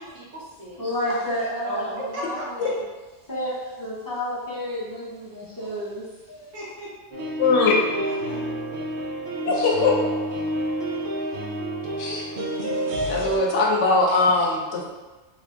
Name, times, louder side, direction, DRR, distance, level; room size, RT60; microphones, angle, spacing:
voice 1, 0.0-0.8 1.6-2.7 6.5-6.9 8.0-8.5 9.6-10.9, equal, 85° right, -7 dB, 1.4 m, -37 dB
voice 2, 0.8-2.7 3.3-6.5, equal, 20° left, -8 dB, 0.6 m, -30 dB
sound 1, 7.1-13.4, right 1 dB, 60° right, 0.7 m, -29 dB
voice 3, 7.4-7.7 9.5-9.9 12.0-12.2 13.1-14.8, left 3 dB, 80° left, -1 dB, 1.0 m, -20 dB
3.1 x 2.6 x 3.4 m, 1.2 s
omnidirectional pair, 1.2 m